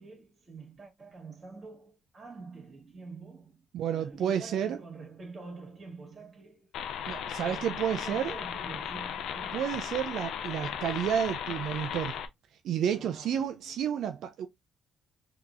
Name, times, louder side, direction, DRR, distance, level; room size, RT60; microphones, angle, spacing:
voice 1, 0.0-3.7 3.9-6.7 7.4-9.6 12.9-13.8, right 4 dB, 40° right, 1.8 m, -46 dB
voice 2, 3.7-4.8 7.1-8.3 9.5-12.2 12.6-14.5, right 9 dB, 75° right, 0.3 m, -31 dB
sound 1, 6.7-12.3, left 8 dB, 80° left, 0.4 m, -36 dB
3.7 x 2.9 x 2.4 m
cardioid pair, 90°, 0 cm